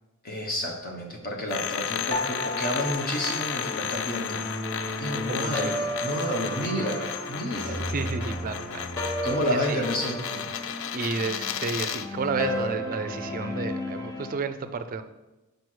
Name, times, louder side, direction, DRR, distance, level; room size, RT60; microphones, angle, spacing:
voice 1, 0.2-4.4 5.0-7.9 9.2-10.5, equal, 40° left, 1 dB, 1.2 m, -30 dB
sound 1, 1.5-12.1, left 8 dB, 60° left, 0.4 m, -33 dB
sound 2, 2.1-14.3, equal, 15° left, 0.7 m, -34 dB
voice 2, 5.3-5.7 7.6-9.2 9.7-9.8 10.9-15.0, right 4 dB, 40° right, 10 dB, 0.4 m, -32 dB
5.1 x 4.6 x 6.2 m, 1.0 s
head